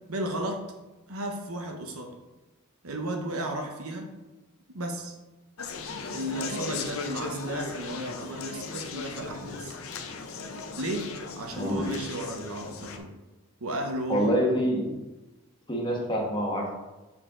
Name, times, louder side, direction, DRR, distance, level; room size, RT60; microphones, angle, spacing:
voice 1, 0.1-0.6 1.1-2.2 2.8-4.1 4.7-5.1 6.1-9.7 10.8-11.1 11.4-13.1 13.6-14.5, right 1 dB, 90° right, 3 dB, 1.0 m, -34 dB
Conversation, 5.6-13.0, left 4 dB, 75° left, 0.6 m, -37 dB
voice 2, 14.1-14.9 15.7-16.7, equal, 20° left, -2 dB, 1.4 m, -26 dB
6.8 x 4.5 x 3.8 m, 1.1 s
head